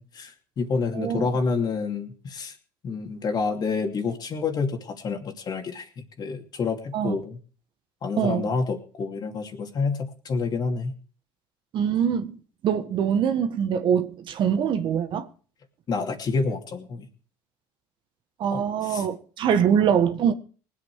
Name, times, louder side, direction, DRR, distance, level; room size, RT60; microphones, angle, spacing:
voice 1, 0.0-2.6 2.8-7.4 8.0-10.9 15.9-17.1 18.5-19.1, left 4 dB, 45° left, 2.6 m, -28 dB
voice 2, 0.9-1.3 6.9-7.2 8.2-8.4 11.7-12.4 12.6-15.3 18.4-20.3, right 8 dB, 55° right, 1.6 m, -23 dB
19.5 x 8.2 x 4.8 m
supercardioid pair, 85°, 10 cm